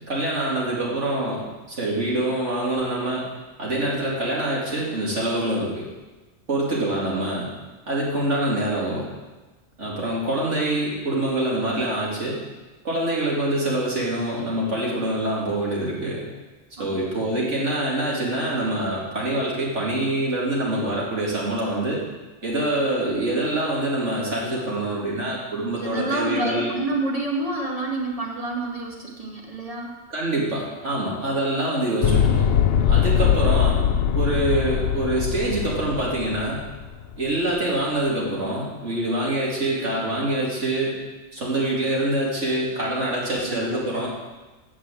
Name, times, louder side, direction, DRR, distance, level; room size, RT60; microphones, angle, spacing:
voice 1, 0.1-3.3 3.6-5.9 6.5-7.5 7.9-9.1 9.8-12.4 12.8-16.2 16.8-22.0 22.4-26.7 30.1-32.5 32.9-33.8 34.1-36.6 37.2-41.0 41.3-44.1, right 1 dB, 70° right, -5 dB, 3.0 m, -25 dB
voice 2, 25.8-30.0 43.5-43.8, right 2 dB, 30° right, -2 dB, 1.9 m, -28 dB
sound 1, 32.0-37.2, left 8 dB, 60° left, 0.7 m, -21 dB
8.5 x 7.1 x 7.6 m, 1.2 s
omnidirectional pair, 1.3 m